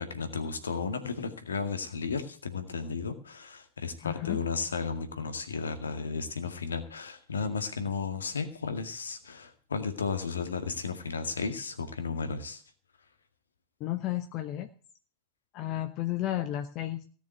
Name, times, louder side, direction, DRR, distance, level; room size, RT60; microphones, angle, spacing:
voice 1, 0.0-12.6, left 5 dB, 70° left, 8 dB, 2.0 m, -34 dB
voice 2, 4.0-4.4 13.8-14.7 15.5-17.1, left 13 dB, 40° left, 8 dB, 1.0 m, -32 dB
16.5 x 6.8 x 8.0 m, 0.42 s
figure-of-eight pair, 90°, 0 cm